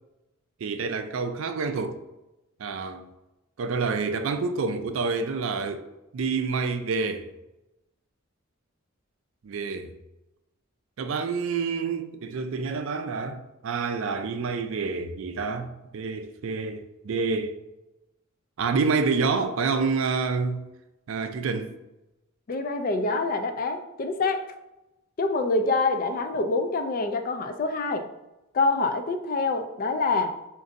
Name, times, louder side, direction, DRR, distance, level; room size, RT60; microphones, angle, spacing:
voice 1, 0.6-2.0 2.6-3.1 3.6-5.8 6.1-7.3 9.4-9.9 11.0-17.6 18.6-20.6 21.1-21.7, right 4 dB, 70° right, 0.4 m, -28 dB
voice 2, 22.5-24.5 25.2-28.1 28.5-30.3, left 3 dB, 40° left, 0.3 m, -26 dB
5.1 x 2.6 x 2.5 m
head